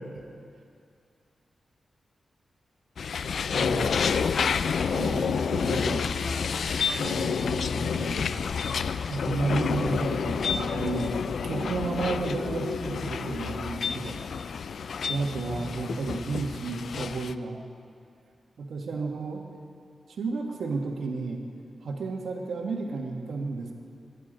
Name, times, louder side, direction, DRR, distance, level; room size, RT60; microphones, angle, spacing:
sound 1, 3.0-17.3, left 6 dB, 70° left, 0.4 m, -29 dB
voice 1, 3.5-3.9 4.9-6.1 7.0-8.3 9.1-14.2 15.1-17.6 18.6-19.4 20.1-21.4 21.8-23.7, right 3 dB, 75° right, 1 dB, 1.6 m, -32 dB
22.5 x 9.7 x 5.2 m, 2.3 s
wide cardioid pair, 120°, 0 cm